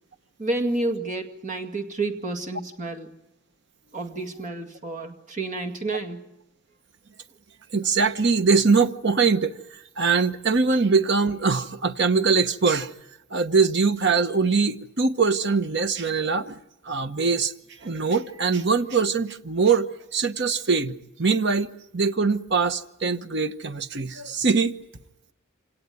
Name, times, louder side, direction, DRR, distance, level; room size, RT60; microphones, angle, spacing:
voice 1, 0.4-3.1 3.9-6.3, right 2 dB, 35° right, 2.1 m, -30 dB
voice 2, 7.7-9.5 10.0-12.9 13.3-16.6 16.8-17.5 17.8-19.9 20.1-24.8, right 4 dB, 55° right, 1.1 m, -22 dB
26.5 x 18.0 x 9.2 m
head